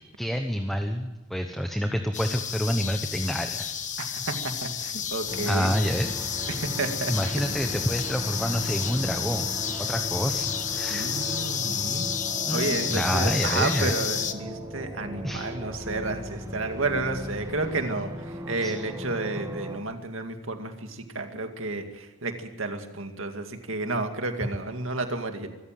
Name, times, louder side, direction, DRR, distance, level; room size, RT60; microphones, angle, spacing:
voice 1, 0.2-3.8 5.5-6.2 7.1-9.5 9.8-11.1 12.5-14.0 15.2-15.5 18.6-18.7, equal, ahead, 5 dB, 0.9 m, -28 dB
sound 1, 2.1-14.3, left 8 dB, 35° left, 1.1 m, -31 dB
voice 2, 4.0-5.7 6.5-7.3 10.9-12.1 12.5-25.5, right 3 dB, 70° right, 5 dB, 2.2 m, -31 dB
sound 2, 5.3-19.8, equal, 15° right, 2.5 m, -37 dB
24.0 x 14.0 x 7.7 m, 1.1 s
head